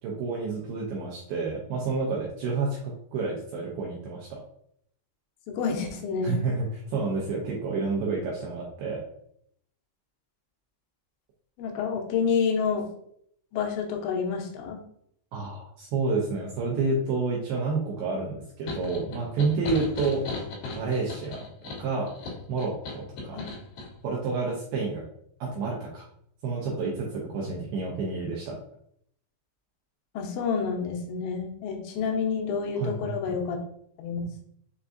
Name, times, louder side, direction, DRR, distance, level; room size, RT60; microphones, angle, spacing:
voice 1, 0.0-4.4 6.2-9.0 15.3-20.2 20.8-21.4 21.8-22.1 22.5-23.5 24.0-25.0 25.4-26.0 26.4-28.6 32.8-33.1, right 4 dB, 80° right, -3 dB, 2.3 m, -29 dB
voice 2, 5.5-6.4 11.6-12.9 13.5-14.8 23.3-23.4 30.1-33.6 34.0-34.4, left 6 dB, 85° left, 1 dB, 3.1 m, -28 dB
sound 1, 18.7-23.9, left 3 dB, 65° left, 3.0 m, -37 dB
6.9 x 2.3 x 2.5 m, 0.69 s
omnidirectional pair, 5.1 m